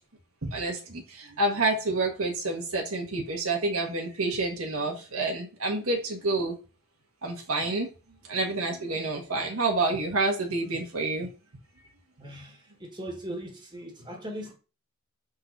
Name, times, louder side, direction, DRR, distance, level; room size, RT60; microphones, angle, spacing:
voice 1, 0.5-6.6 7.2-7.9 8.3-11.3, right 2 dB, 75° right, 1.5 m, -28 dB
voice 2, 12.2-14.5, equal, 20° right, 1.5 m, -39 dB
6.4 x 3.9 x 4.1 m
head